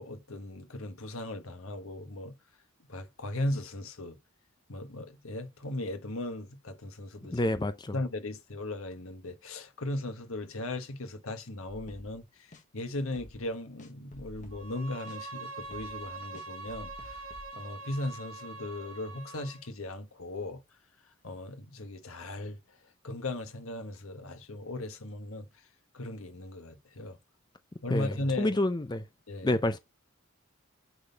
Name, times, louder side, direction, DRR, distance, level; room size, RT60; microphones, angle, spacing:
voice 1, 0.0-2.4 2.8-4.2 4.7-7.4 7.9-17.2 17.5-20.6 21.2-22.8 23.0-25.5 25.9-27.2 27.8-28.6 29.3-29.5, left 1 dB, 85° left, 1.4 m, -37 dB
voice 2, 7.3-7.9 27.9-29.0 29.4-29.8, left 1 dB, 20° left, 0.5 m, -28 dB
sound 1, 11.7-12.2 12.5-12.6 13.0-13.5 13.8-14.8 15.1-15.2 15.6-17.5, left 1 dB, 35° left, 1.2 m, -51 dB
Bowed string instrument, 14.5-19.7, right 3 dB, 80° right, 2.2 m, -44 dB
9.7 x 4.0 x 4.0 m
head